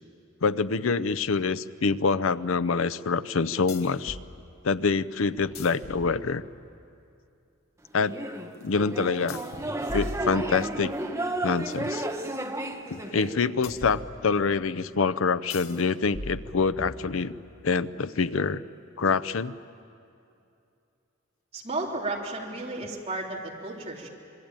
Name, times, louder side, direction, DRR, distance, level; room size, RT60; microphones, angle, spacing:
voice 1, 0.4-4.2 4.6-6.4 7.9-8.1 8.6-9.4 9.9-10.9 11.4-12.1 12.9-17.3 17.6-18.6 19.0-19.5, left 4 dB, 70° left, 15 dB, 0.6 m, -26 dB
sound 1, 1.3-1.4 3.7-4.3 5.4-6.7 9.3-11.0 13.6-14.6 15.5-15.8 16.1-17.5, left 1 dB, 90° left, 1.9 m, -40 dB
sound 2, 8.0-13.3, right 1 dB, 15° right, 1.3 m, -32 dB
voice 2, 21.5-24.1, right 2 dB, 30° right, -2 dB, 3.5 m, -33 dB
26.5 x 23.0 x 9.0 m, 2.6 s
head